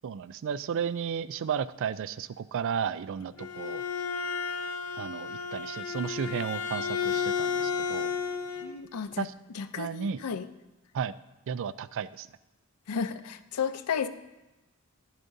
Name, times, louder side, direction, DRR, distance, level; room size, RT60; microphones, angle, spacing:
voice 1, 0.0-3.8 5.0-8.1 9.2-9.3 9.8-10.2 10.9-11.1 11.5-12.3, right 7 dB, 60° right, 16 dB, 0.3 m, -33 dB
Bowed string instrument, 3.2-8.7, left 6 dB, 70° left, 0.9 m, -32 dB
voice 2, 8.6-9.3 9.5-10.5 12.9-14.1, left 6 dB, 90° left, 11 dB, 0.5 m, -33 dB
14.5 x 10.5 x 2.7 m, 1.0 s
head